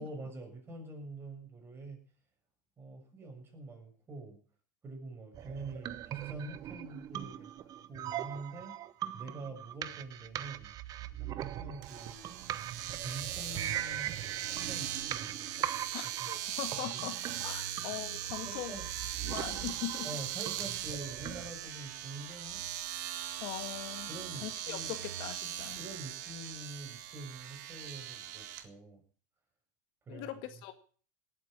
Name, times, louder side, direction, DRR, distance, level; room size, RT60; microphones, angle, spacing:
voice 1, 0.0-2.0 2.8-4.4 4.8-7.5 7.9-8.8 9.1-10.7 11.2-12.4 12.9-14.2 14.5-15.3 16.2-16.3 18.4-18.8 20.0-22.7 24.1-24.9 25.8-29.0 30.1-30.3, right 2 dB, 25° right, 2 dB, 6.9 m, -45 dB
sound 1, 5.3-21.5, right 12 dB, 40° right, 1.0 m, -41 dB
Domestic sounds home sounds, 11.8-28.6, right 12 dB, 70° right, 1.9 m, -40 dB
voice 2, 15.9-17.2 17.4-18.8 19.2-20.1 23.4-24.1 24.4-25.8 30.1-30.7, left 13 dB, 60° left, 8 dB, 1.8 m, -41 dB
18.0 x 8.6 x 7.4 m, 0.43 s
supercardioid pair, 110°, 10 cm